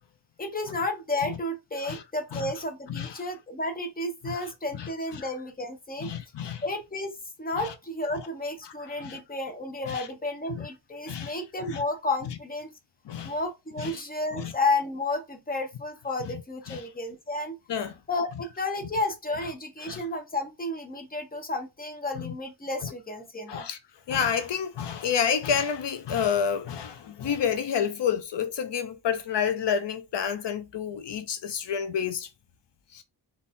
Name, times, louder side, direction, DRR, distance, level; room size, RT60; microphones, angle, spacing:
voice 1, 0.4-6.1 6.6-12.7 13.2-17.6 18.1-23.7, left 2 dB, 20° left, 0.9 m, -32 dB
voice 2, 4.7-5.2 6.0-6.6 7.6-7.7 8.6-8.7 9.0-9.2 9.9-10.1 10.5-10.7 11.1-11.3 11.7-11.8 13.1-13.3 13.8-13.9 14.3-14.5 16.7-16.9 17.7-17.9 19.8-20.0 22.2-22.3 22.8-22.9 23.5-23.8 24.1-32.3 32.9-33.0, left 7 dB, 80° left, 0.7 m, -29 dB
4.1 x 2.7 x 3.6 m
wide cardioid pair, 125°, 42 cm